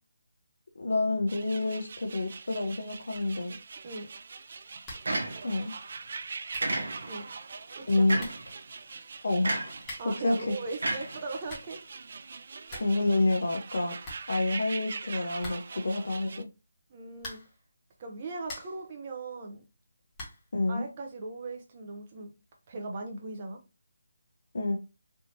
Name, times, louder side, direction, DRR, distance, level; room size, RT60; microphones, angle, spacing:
voice 1, 0.8-3.6 5.4-5.7 7.9-8.3 9.2-9.7 10.0-10.5 12.8-13.9 14.3-16.5 20.5-20.9 24.5-24.8, left 2 dB, 65° left, 0.7 m, -28 dB
sound 1, 1.3-16.4, right 5 dB, 50° right, 0.4 m, -43 dB
sound 2, 4.8-5.2 5.5-5.6 6.2-6.3 6.5-6.8 7.8-7.9 8.2-8.5 9.8-10.3 11.2-11.8 12.2-12.3 12.5-13.0 13.3-13.4 13.7-13.8 14.0-14.8 15.4-15.9 17.1-17.6 18.1-18.9 20.1-20.5, left 1 dB, 15° left, 1.4 m, -45 dB
sound 3, 5.1-5.7 6.6-7.3 8.1-8.5 9.4-9.9 10.8-11.7, right 2 dB, 75° right, 0.9 m, -32 dB
voice 2, 7.8-8.1 10.0-11.8 16.9-17.4 18.0-19.6 20.7-22.3 22.7-23.6, right 3 dB, 30° right, 0.9 m, -39 dB
3.5 x 2.7 x 2.8 m
figure-of-eight pair, 160°, 0 cm